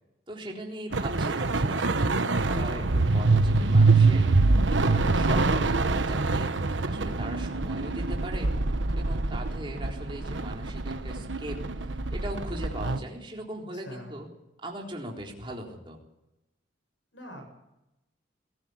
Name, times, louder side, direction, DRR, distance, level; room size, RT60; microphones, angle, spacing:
voice 1, 0.3-2.2 2.4-4.2 4.7-6.5 6.9-8.5 9.0-14.3 14.6-16.0, right 1 dB, 25° right, 0 dB, 3.9 m, -39 dB
sound 1, 0.9-13.0, right 3 dB, 80° right, 1.2 m, -25 dB
voice 2, 13.8-14.2 17.1-17.5, equal, 85° left, 4 dB, 7.8 m, -43 dB
21.5 x 14.5 x 9.7 m, 0.93 s
head